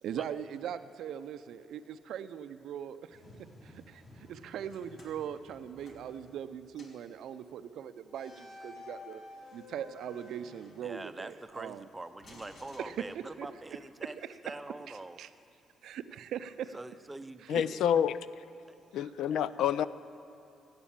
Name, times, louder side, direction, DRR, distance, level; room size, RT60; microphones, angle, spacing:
voice 1, 0.0-3.2 3.6-9.2 9.5-11.9 12.8-13.5 14.5-14.6 14.9-15.3 15.8-16.7 19.0-19.1, right 9 dB, 75° right, 12 dB, 0.5 m, -40 dB
sound 1, 3.1-6.6, left 1 dB, 35° left, 3.1 m, -56 dB
sound 2, 4.7-6.5 6.7-7.1 8.1-11.3 12.2-13.6, left 3 dB, 60° left, 2.5 m, -53 dB
voice 2, 10.8-14.2 14.4-15.2 16.7-17.9, right 2 dB, 15° right, 11 dB, 0.6 m, -44 dB
voice 3, 17.5-18.2 18.9-19.9, left 9 dB, 80° left, 16 dB, 0.4 m, -28 dB
14.5 x 8.1 x 8.6 m, 2.9 s
cardioid pair, 90°, 0 cm